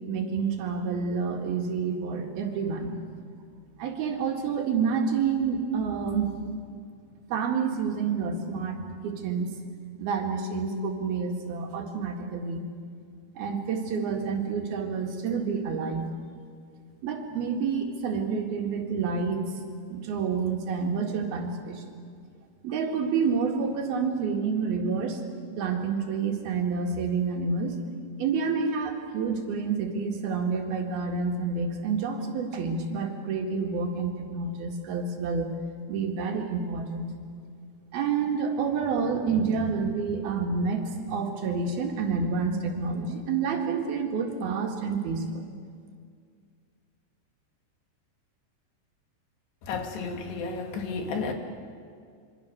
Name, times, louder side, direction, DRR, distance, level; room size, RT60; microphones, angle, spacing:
voice 1, 0.1-3.0 3.8-6.5 7.3-9.5 10.0-12.6 13.4-16.1 17.0-19.4 19.9-21.8 22.6-25.2 25.6-27.8 28.2-35.5 35.9-37.1 37.9-45.4, right 5 dB, 65° right, 3 dB, 3.7 m, -28 dB
voice 2, 49.6-51.3, left 4 dB, 80° left, 4 dB, 4.2 m, -32 dB
26.0 x 24.0 x 6.8 m, 2.2 s
omnidirectional pair, 4.8 m